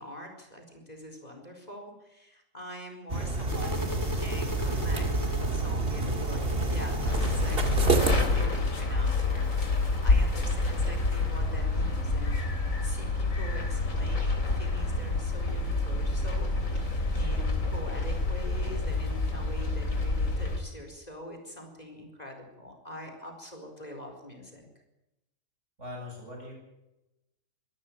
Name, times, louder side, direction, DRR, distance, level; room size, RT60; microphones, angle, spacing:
voice 1, 0.0-24.7, left 1 dB, 30° left, 3 dB, 4.6 m, -44 dB
sound 1, 3.1-8.3, right 2 dB, 45° right, 2.4 m, -28 dB
sound 2, 3.5-11.5, left 1 dB, 15° left, 2.8 m, -39 dB
sound 3, 7.0-20.6, left 3 dB, 80° left, 3.8 m, -28 dB
voice 2, 25.8-26.5, left 2 dB, 60° right, 0 dB, 8.4 m, -41 dB
25.0 x 13.0 x 8.7 m, 0.94 s
omnidirectional pair, 1.4 m